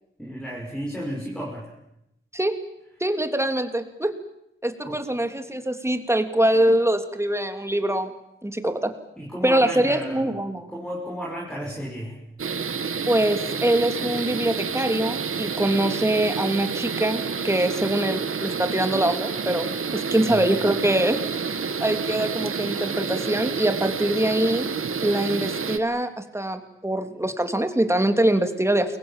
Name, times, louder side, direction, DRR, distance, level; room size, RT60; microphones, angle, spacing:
voice 1, 0.2-1.7 4.8-5.0 9.2-10.3 10.7-12.2 20.0-20.4, equal, 5° left, -2 dB, 6.1 m, -33 dB
voice 2, 3.0-4.1 4.6-8.1 8.4-8.9 9.4-10.7 13.1-19.7 19.9-21.2 21.8-24.7 25.0-29.0, right 1 dB, 10° right, 7 dB, 3.0 m, -23 dB
sound 1, 12.4-25.8, right 5 dB, 85° right, 1.7 m, -29 dB
29.5 x 23.0 x 7.5 m, 0.82 s
wide cardioid pair, 100°, 21 cm